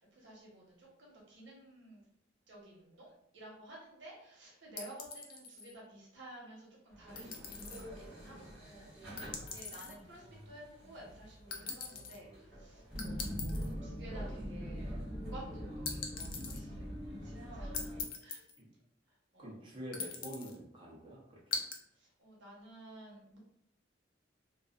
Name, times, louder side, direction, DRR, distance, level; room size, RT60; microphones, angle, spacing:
voice 1, 0.0-2.0 2.5-16.9 17.2-17.9 18.2-18.5 19.1-19.6 21.9-23.4, right 1 dB, 80° right, -3 dB, 0.9 m, -53 dB
sound 1, 4.8-5.7 7.2-7.8 9.2-10.0 11.5-12.2 13.0-13.7 15.9-16.6 17.7-18.6 19.9-20.6 21.5-21.8, left 5 dB, 50° left, 0.4 m, -41 dB
sound 2, 6.9-18.0, equal, 5° right, 1.2 m, -44 dB
voice 2, 19.4-21.6, equal, 25° right, -5 dB, 0.7 m, -47 dB
2.4 x 2.4 x 2.3 m, 0.75 s
head